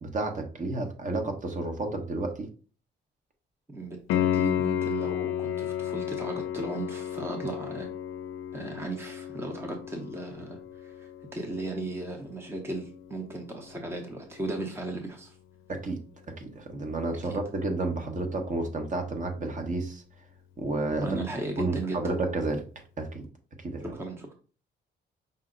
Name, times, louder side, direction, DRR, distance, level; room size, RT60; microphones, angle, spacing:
voice 1, 0.0-2.5 15.7-16.0 16.3-20.0 20.6-21.2 21.6-22.6 23.0-23.2 23.6-23.8, right 2 dB, 40° right, 4 dB, 1.0 m, -31 dB
voice 2, 3.7-7.9 8.5-15.3 17.3-17.4 21.0-22.0 23.9-24.3, right 2 dB, 10° right, 3 dB, 0.7 m, -36 dB
Piano, 4.1-14.8 18.1-18.2, left 10 dB, 80° left, 0.4 m, -33 dB
5.5 x 2.0 x 3.8 m, 0.38 s
cardioid pair, 90°, 20 cm